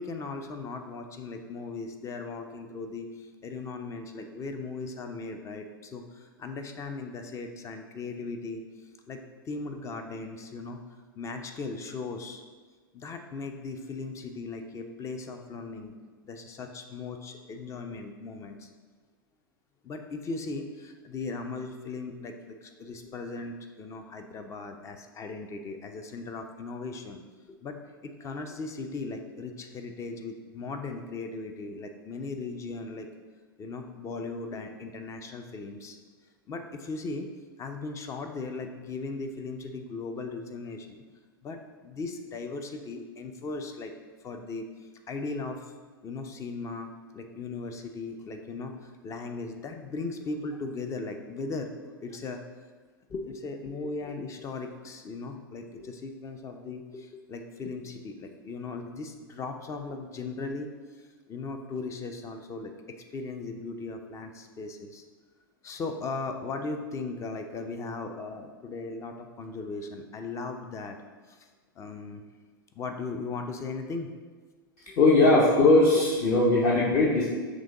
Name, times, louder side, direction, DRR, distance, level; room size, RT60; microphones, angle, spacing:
voice 1, 0.0-10.8 11.2-12.4 12.9-15.9 16.2-18.7 19.8-27.2 27.5-33.1 33.6-36.0 36.5-37.3 37.6-41.0 41.4-43.9 44.2-44.7 45.1-45.7 46.0-52.4 53.1-62.7 63.1-65.0 65.6-71.0 71.3-71.5 71.8-72.2 72.7-74.1 74.9-75.0 76.3-76.4, left 3 dB, 25° left, 5 dB, 0.4 m, -38 dB
voice 2, 75.0-77.3, left 2 dB, 40° left, -5 dB, 0.8 m, -20 dB
6.0 x 2.3 x 3.7 m, 1.4 s
figure-of-eight pair, 95°, 12 cm